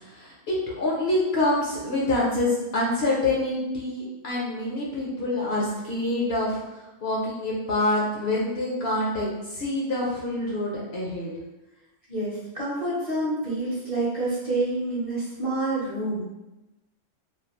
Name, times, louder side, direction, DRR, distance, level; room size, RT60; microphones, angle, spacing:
voice 1, 0.0-11.3, left 1 dB, 65° left, -4 dB, 0.8 m, -26 dB
voice 2, 12.1-16.2, right 2 dB, 35° right, -9 dB, 0.7 m, -28 dB
2.5 x 2.3 x 2.8 m, 1.0 s
omnidirectional pair, 1.3 m